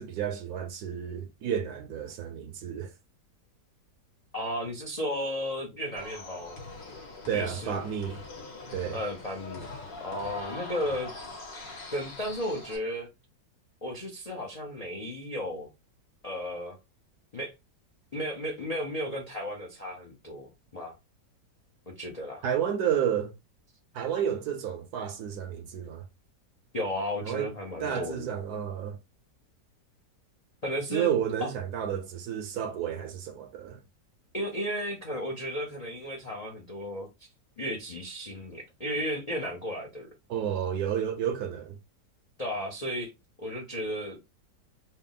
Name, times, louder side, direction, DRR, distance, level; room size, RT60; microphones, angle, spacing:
voice 1, 0.0-2.9 7.3-8.2 8.7-9.0 22.4-23.3 23.9-26.0 27.2-27.5 27.8-29.0 30.9-33.8 40.3-41.8, right 9 dB, 70° right, 1.2 m, -31 dB
voice 2, 4.3-6.6 7.3-7.9 8.9-9.7 10.0-11.1 11.9-13.1 13.8-15.7 16.2-16.8 17.3-17.5 18.1-21.0 21.9-22.4 26.7-28.4 30.6-31.1 31.4-31.5 34.3-37.1 37.6-40.1 42.4-43.1 43.4-44.2, equal, 45° left, 0.5 m, -34 dB
sound 1, 6.0-12.8, left 3 dB, 90° left, 2.1 m, -42 dB
4.4 x 2.0 x 3.8 m
omnidirectional pair, 1.9 m